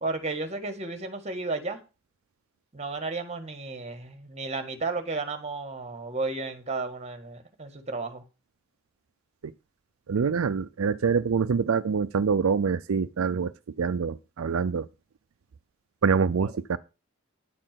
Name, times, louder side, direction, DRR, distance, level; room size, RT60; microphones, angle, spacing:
voice 1, 0.0-1.8 2.7-8.2 16.4-16.5, right 3 dB, 30° right, 1.6 m, -33 dB
voice 2, 10.1-13.5 13.8-14.9 16.0-16.8, right 5 dB, 80° right, 0.5 m, -25 dB
10.0 x 4.4 x 7.5 m
head